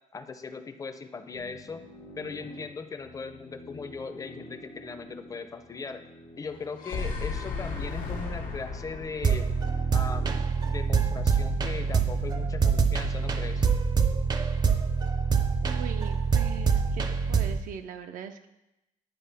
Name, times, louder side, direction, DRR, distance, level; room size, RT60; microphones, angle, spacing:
voice 1, 0.1-1.9 2.2-6.0 6.4-9.5 9.9-13.7, left 4 dB, 25° left, 9 dB, 0.5 m, -39 dB
sound 1, 1.3-14.6, left 1 dB, 70° left, 1.2 m, -49 dB
sound 2, 6.5-10.7, left 4 dB, 85° left, 1.2 m, -35 dB
sound 3, 9.2-17.6, right 5 dB, 30° right, 0.4 m, -25 dB
voice 2, 15.6-17.0 17.3-18.5, right 9 dB, 85° right, 7 dB, 0.4 m, -40 dB
10.5 x 4.5 x 3.4 m, 0.93 s
cardioid pair, 130°, 14 cm